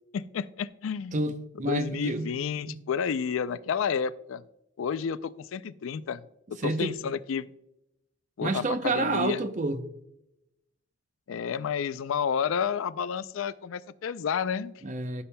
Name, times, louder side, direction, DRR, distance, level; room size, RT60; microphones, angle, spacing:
voice 1, 0.1-1.2 1.6-4.4 4.8-6.2 6.5-7.5 8.4-9.4 11.3-14.7, left 7 dB, 80° left, 0.4 m, -30 dB
voice 2, 1.1-2.3 2.7-2.8 6.6-7.0 8.4-9.9 14.8-15.2, right 2 dB, 40° right, 0.6 m, -29 dB
14.5 x 7.0 x 2.2 m
head